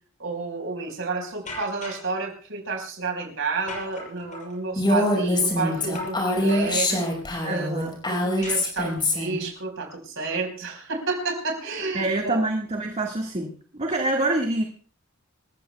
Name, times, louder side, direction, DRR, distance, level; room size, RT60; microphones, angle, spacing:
voice 1, 0.2-7.0 7.4-7.8 8.0-12.4, right 3 dB, 65° right, 2 dB, 5.0 m, -30 dB
sound 1, 1.5-2.1 3.7-4.6 5.9-6.2 6.5-7.2 8.4-9.2, left 2 dB, 40° left, 6.9 m, -38 dB
Female speech woman speaking, 4.8-9.4, left 1 dB, 20° left, 5.4 m, -24 dB
voice 2, 7.4-8.0 11.9-14.6, right 2 dB, 30° right, 1 dB, 1.8 m, -26 dB
27.0 x 15.5 x 2.3 m, 0.43 s
head